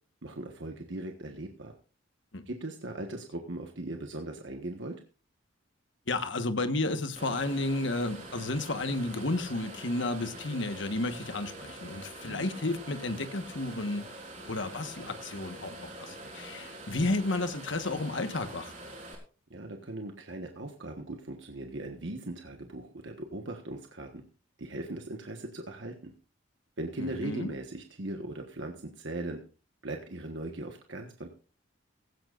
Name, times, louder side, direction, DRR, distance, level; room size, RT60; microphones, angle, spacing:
voice 1, 0.2-1.7 2.5-5.0 12.3-12.4 19.5-24.2 24.6-26.1 26.8-29.4 29.8-31.3, right 2 dB, 65° right, 1.4 m, -39 dB
voice 2, 6.1-14.1 14.5-18.7 27.0-27.5, left 2 dB, 70° left, 1.4 m, -32 dB
sound 1, 7.2-19.2, right 2 dB, 35° right, 4.1 m, -45 dB
16.5 x 16.0 x 2.5 m
head